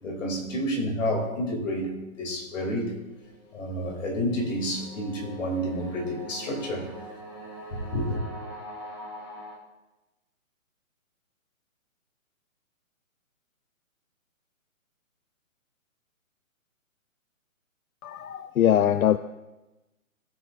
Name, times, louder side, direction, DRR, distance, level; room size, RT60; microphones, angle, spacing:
voice 1, 0.0-2.9 3.5-6.9 7.9-8.0, equal, 65° left, 1 dB, 3.3 m, -29 dB
sound 1, 3.1-9.6, right 1 dB, 20° left, 1.1 m, -43 dB
voice 2, 18.0-19.2, left 10 dB, 90° left, 13 dB, 0.6 m, -22 dB
16.0 x 6.3 x 2.7 m, 1.0 s
hypercardioid pair, 160°, 42 cm